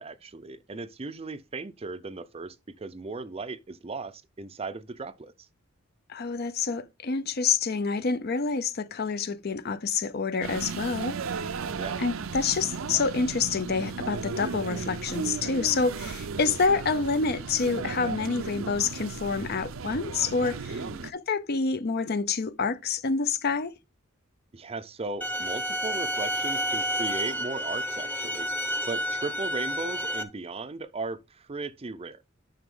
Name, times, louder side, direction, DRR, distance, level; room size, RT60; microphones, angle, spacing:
voice 1, 0.0-5.3 11.8-12.0 20.7-21.1 24.5-28.5 28.9-32.2, right 3 dB, 30° right, 0.5 m, -37 dB
voice 2, 6.1-11.4 12.0-23.7, left 4 dB, 50° left, 0.6 m, -28 dB
sound 1, 10.4-21.1, right 5 dB, 80° right, 0.6 m, -35 dB
sound 2, 25.2-30.2, equal, 10° left, 0.8 m, -30 dB
9.3 x 5.9 x 3.7 m
head